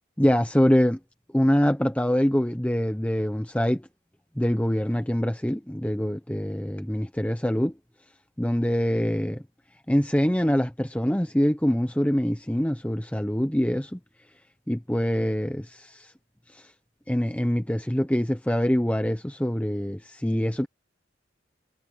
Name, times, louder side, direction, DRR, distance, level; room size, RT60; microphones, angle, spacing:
voice 1, 0.2-1.0 1.3-3.9 4.4-7.7 8.4-9.4 9.9-14.0 14.7-16.1 16.5-16.7 17.1-20.7, equal, 5° left, 0.8 m, -24 dB
head